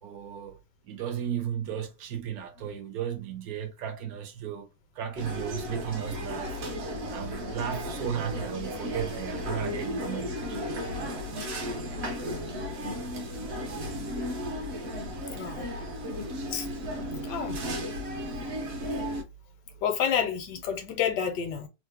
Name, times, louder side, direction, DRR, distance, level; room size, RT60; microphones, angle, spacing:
voice 1, 0.0-0.6 0.9-4.7 5.0-6.6 7.1-10.4 15.3-15.4 15.7-15.8, right 9 dB, 70° right, 1.0 m, -34 dB
sound 1, 5.2-19.2, equal, 55° right, 0.8 m, -34 dB
voice 2, 15.4-15.7 16.5-16.7 17.2-17.6 19.0-19.1 19.8-21.7, left 8 dB, 85° left, 1.4 m, -29 dB
3.1 x 2.0 x 3.4 m
omnidirectional pair, 1.8 m